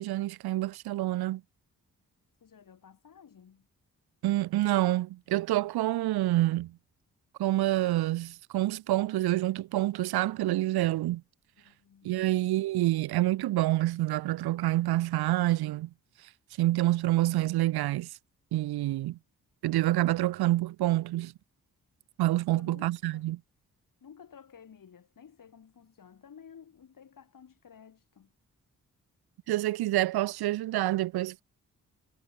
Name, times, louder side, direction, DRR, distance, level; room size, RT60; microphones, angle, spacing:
voice 1, 0.0-1.4 4.2-6.8 7.4-11.2 12.0-15.9 16.6-18.1 18.5-19.2 19.6-21.3 22.2-23.4 29.5-31.4, right 16 dB, 80° right, 0.7 m, -27 dB
voice 2, 2.4-3.7 11.6-12.3 18.7-19.1 22.5-23.3 24.0-28.3, left 7 dB, 60° left, 2.4 m, -54 dB
supercardioid pair, 45°, 37 cm